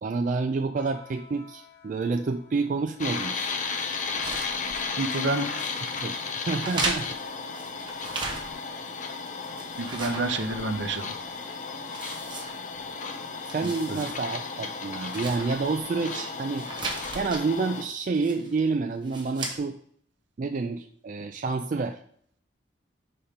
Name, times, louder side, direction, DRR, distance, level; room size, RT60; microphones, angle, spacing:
voice 1, 0.0-3.3 5.9-6.2 6.5-7.1 13.4-16.7 17.1-19.8 20.4-22.0, right 4 dB, 40° right, 6 dB, 0.3 m, -28 dB
sound 1, 0.7-7.0, left 2 dB, 55° left, 2.9 m, -53 dB
sound 2, 3.0-17.8, left 4 dB, 40° left, 0.6 m, -34 dB
sound 3, 3.3-5.3 5.5-6.1 6.6-8.8 9.1-11.0 11.4-11.5 11.9-13.0 13.3-14.2 14.5-14.6 15.0-16.2 16.6-17.4 18.1-18.6 19.0-19.6, right 2 dB, 25° right, 1.1 m, -36 dB
voice 2, 5.0-5.6 9.8-11.1 13.9-14.0, right 2 dB, 70° right, 7 dB, 0.8 m, -29 dB
5.3 x 4.3 x 5.0 m, 0.63 s
head